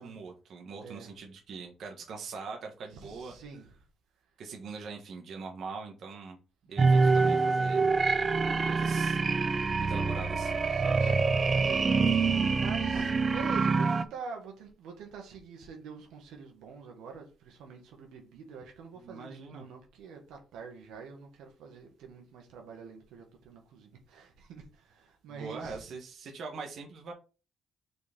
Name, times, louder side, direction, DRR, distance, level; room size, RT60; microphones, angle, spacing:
voice 1, 0.0-3.3 4.4-6.4 6.7-7.9 8.7-9.2 9.8-10.5 18.9-19.6 25.3-27.1, right 4 dB, 65° right, 1.5 m, -42 dB
voice 2, 0.8-1.1 2.9-3.8 6.8-7.4 8.7-9.0 10.6-11.3 11.6-25.8, right 5 dB, 90° right, 1.8 m, -46 dB
sound 1, 6.8-14.0, right 4 dB, 35° right, 0.6 m, -26 dB
6.2 x 4.5 x 3.7 m
cardioid pair, 90°, 0 cm